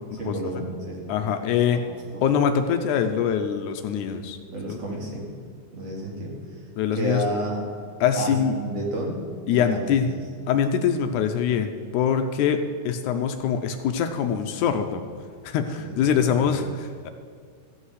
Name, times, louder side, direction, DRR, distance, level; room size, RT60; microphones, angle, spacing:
voice 1, 0.0-1.1 1.7-1.8 2.1-2.2 4.5-5.3 5.7-6.6 6.9-7.6 8.2-9.2 9.5-9.8 15.8-16.6, right 1 dB, 55° right, -2 dB, 3.1 m, -31 dB
voice 2, 1.1-1.8 2.2-4.4 6.8-7.2 8.0-8.5 9.5-10.1 10.5-12.6 12.9-15.0 15.4-16.7 17.0-17.1, left 8 dB, 80° left, 7 dB, 2.0 m, -23 dB
14.0 x 8.3 x 4.8 m, 2.1 s
omnidirectional pair, 3.7 m